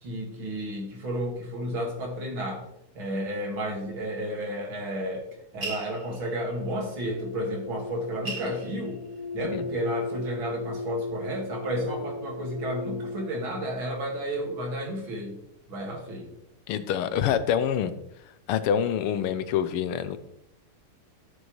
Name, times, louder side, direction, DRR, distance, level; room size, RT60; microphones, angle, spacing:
voice 1, 0.0-2.7 2.9-5.3 5.5-9.0 9.3-15.4 15.7-16.3, equal, 65° right, 0 dB, 2.7 m, -32 dB
sound 1, 5.6-6.6 7.6-7.7 8.0-9.7 10.1-10.8, right 3 dB, 25° right, 1.6 m, -38 dB
sound 2, 7.1-13.4, left 2 dB, 65° left, 1.1 m, -37 dB
voice 2, 16.7-17.9 18.5-20.2, left 9 dB, 90° left, 12 dB, 1.6 m, -26 dB
12.0 x 6.4 x 3.1 m, 0.80 s
omnidirectional pair, 2.4 m